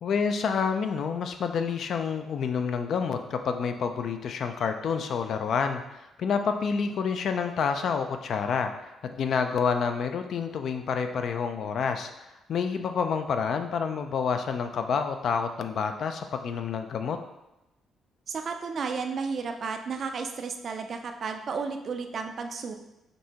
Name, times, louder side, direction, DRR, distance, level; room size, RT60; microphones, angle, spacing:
voice 1, 0.0-17.2, left 6 dB, 65° left, 7 dB, 0.4 m, -28 dB
voice 2, 18.3-22.7, right 5 dB, 55° right, 5 dB, 0.3 m, -33 dB
5.2 x 2.7 x 2.9 m, 0.94 s
cardioid pair, 90°, 0 cm